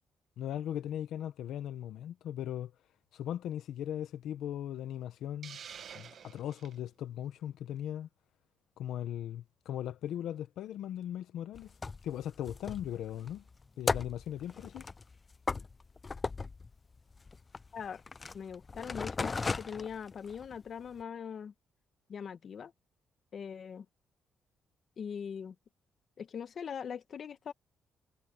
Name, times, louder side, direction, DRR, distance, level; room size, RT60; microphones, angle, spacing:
voice 1, 0.4-2.7 3.1-5.6 5.9-8.1 8.8-11.7 12.0-13.4 13.8-14.9, left 11 dB, 80° left, 1.0 m, -38 dB
Hiss, 5.4-6.8, right 8 dB, 60° right, 1.3 m, -48 dB
sound 1, 11.5-20.6 21.0-21.1, left 4 dB, 30° left, 0.4 m, -37 dB
voice 2, 17.7-18.0 18.3-21.5 22.1-22.7 23.3-23.8 25.0-25.5 26.2-27.5, left 7 dB, 50° left, 1.3 m, -41 dB
cardioid pair, 105°, 0 cm